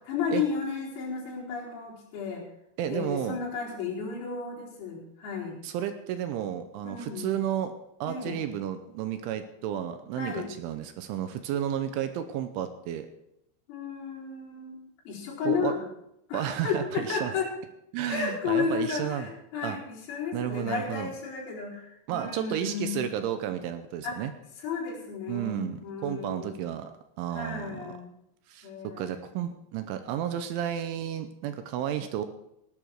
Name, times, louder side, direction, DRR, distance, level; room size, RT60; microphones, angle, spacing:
voice 1, 0.1-2.5 2.9-5.6 6.9-7.3 8.1-8.4 10.2-10.5 13.7-14.8 15.1-15.9 16.3-17.5 18.1-23.0 24.0-24.2 24.6-26.7 27.3-28.1 28.6-29.2, left 5 dB, 80° left, -6 dB, 7.1 m, -33 dB
voice 2, 2.8-3.4 5.6-7.7 8.0-13.1 15.5-15.7 16.3-17.3 17.9-19.3 19.6-19.8 20.3-21.1 22.1-24.3 25.3-27.9 28.5-32.3, right 10 dB, 80° right, 9 dB, 3.0 m, -32 dB
16.0 x 11.0 x 4.7 m, 0.80 s
omnidirectional pair, 5.9 m